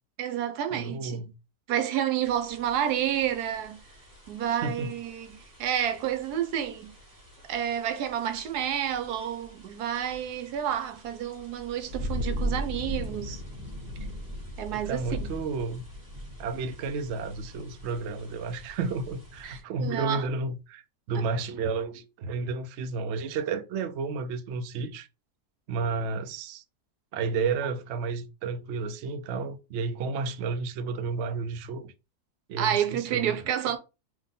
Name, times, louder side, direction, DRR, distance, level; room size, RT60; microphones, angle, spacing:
voice 1, 0.2-1.3 1.7-3.8 4.3-6.9 7.5-13.4 14.6-15.3 19.4-20.3 32.6-33.8, right 10 dB, 85° right, 1.3 m, -30 dB
voice 2, 0.7-1.3 4.5-4.9 14.7-15.8 16.4-20.8 21.1-25.1 25.7-26.6 27.1-31.9 32.5-33.4, right 4 dB, 65° right, 0.6 m, -32 dB
sound 1, 2.2-19.6, equal, 25° right, 1.9 m, -40 dB
3.7 x 2.9 x 3.7 m
omnidirectional pair, 1.7 m